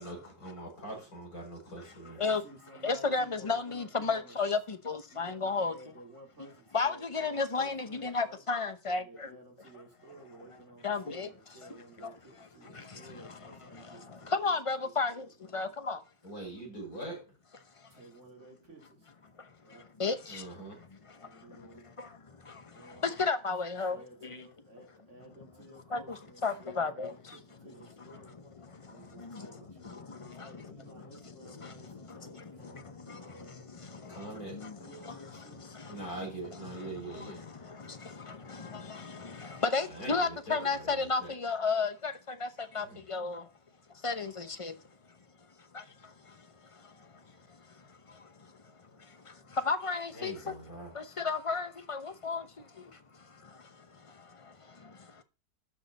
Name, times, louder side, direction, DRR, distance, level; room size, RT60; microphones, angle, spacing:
voice 1, 0.0-2.2 16.2-17.2 20.3-20.8 34.1-34.6 35.9-37.5 39.9-41.3 42.8-43.0 50.1-50.9, right 2 dB, 55° left, 6.0 m, -43 dB
voice 2, 2.0-4.4 5.1-8.4 8.9-15.6 17.9-19.1 19.6-19.9 21.1-22.0 22.7-23.2 23.8-28.4 28.8-32.8 33.1-33.7 34.7-35.6, right 2 dB, 40° right, 4.4 m, -55 dB
voice 3, 2.8-5.7 6.7-9.0 10.8-11.3 14.3-15.2 15.5-16.0 20.0-20.4 23.0-24.0 25.9-26.0 26.4-27.1 34.6-34.7 38.6-38.8 39.7-42.1 42.4-42.5 42.7-43.4 44.0-44.7 49.7-50.3 51.0-52.4, left 4 dB, 30° left, 0.5 m, -31 dB
12.0 x 6.4 x 4.1 m
omnidirectional pair, 1.9 m